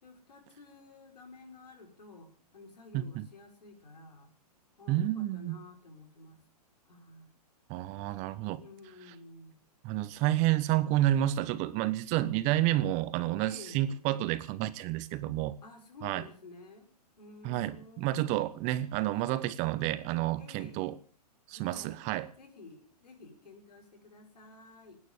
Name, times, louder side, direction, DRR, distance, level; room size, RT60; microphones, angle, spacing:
voice 1, 0.0-4.3 4.8-6.4 6.8-7.3 8.5-9.6 12.1-12.3 13.4-13.9 15.6-16.9 17.2-18.6 19.1-19.4 20.4-20.9 21.5-22.0 22.4-25.0, left 3 dB, 90° left, 5.2 m, -52 dB
voice 2, 2.9-3.3 4.9-5.6 7.7-8.6 9.8-15.6 16.0-16.2 17.4-21.0 21.5-22.3, right 14 dB, 35° right, 1.2 m, -30 dB
19.0 x 9.7 x 7.0 m
hypercardioid pair, 130°, 20 cm